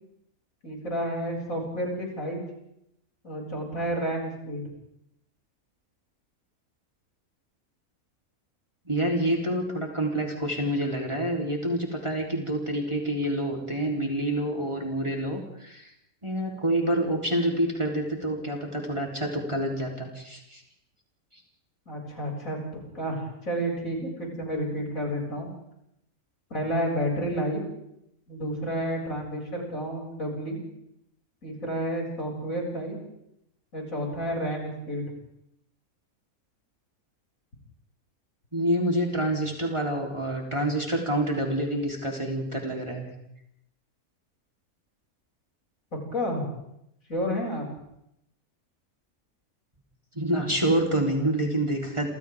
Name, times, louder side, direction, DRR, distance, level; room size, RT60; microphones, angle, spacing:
voice 1, 0.6-2.4 3.2-4.7 21.9-22.6 22.9-25.5 26.5-27.6 28.3-30.6 31.4-33.0 33.7-35.1 46.1-46.5 47.1-47.7, equal, 65° left, -1 dB, 7.9 m, -30 dB
voice 2, 8.9-15.9 16.2-20.6 21.3-21.4 38.5-43.1 50.1-52.1, right 1 dB, 20° right, -1 dB, 4.1 m, -27 dB
28.5 x 27.0 x 3.8 m, 0.78 s
omnidirectional pair, 1.6 m